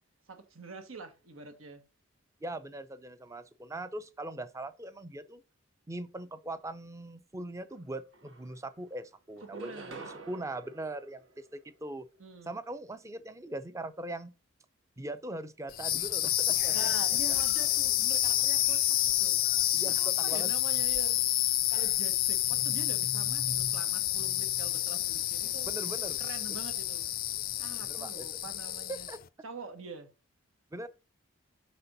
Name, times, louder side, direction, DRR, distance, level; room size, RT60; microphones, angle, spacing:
voice 1, 0.3-1.8 9.4-10.1 12.2-12.6 16.7-19.4 19.8-21.2 21.7-25.8 26.2-27.0 27.6-29.1 29.4-30.1, right 4 dB, 85° right, 1.3 m, -45 dB
voice 2, 2.4-5.4 5.9-12.1 12.5-14.3 15.0-16.9 19.7-20.5 25.7-26.2 27.8-28.3 28.9-29.2 30.7-30.9, right 1 dB, 15° right, 0.5 m, -41 dB
sound 1, 7.7-7.8 8.1-8.9 9.4-12.0, right 3 dB, 65° right, 1.3 m, -48 dB
sound 2, 15.7-29.2, left 13 dB, 45° left, 0.4 m, -29 dB
sound 3, 15.7-27.9, right 1 dB, 45° right, 1.1 m, -55 dB
5.8 x 4.3 x 5.3 m
head